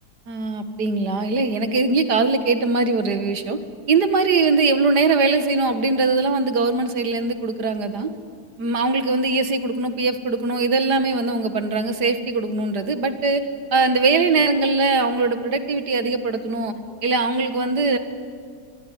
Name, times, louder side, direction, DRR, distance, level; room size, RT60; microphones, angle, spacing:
voice 1, 0.3-3.6 3.9-8.1 8.6-13.4 13.7-16.7 17.0-18.0, right 3 dB, 85° right, 8 dB, 2.2 m, -21 dB
24.0 x 23.5 x 9.2 m, 2.1 s
omnidirectional pair, 1.7 m